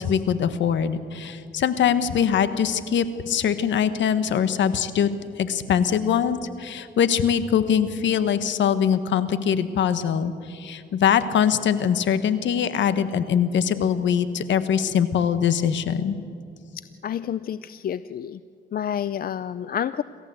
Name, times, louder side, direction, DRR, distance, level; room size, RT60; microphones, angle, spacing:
voice 1, 0.0-5.1 5.4-16.2, left 8 dB, 65° left, 12 dB, 1.4 m, -22 dB
voice 2, 17.0-18.4 18.7-20.0, left 9 dB, 50° left, 15 dB, 0.5 m, -29 dB
27.5 x 14.5 x 7.9 m, 2.5 s
cardioid pair, 90°, 20 cm